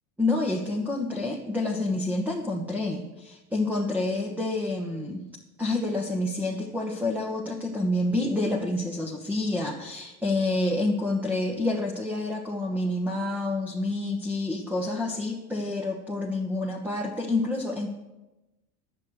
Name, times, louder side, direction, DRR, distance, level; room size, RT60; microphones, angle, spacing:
voice 1, 0.2-5.3 5.6-17.9, left 2 dB, 5° right, 1 dB, 1.2 m, -28 dB
10.5 x 8.7 x 6.4 m, 1.1 s
hypercardioid pair, 100°, 44 cm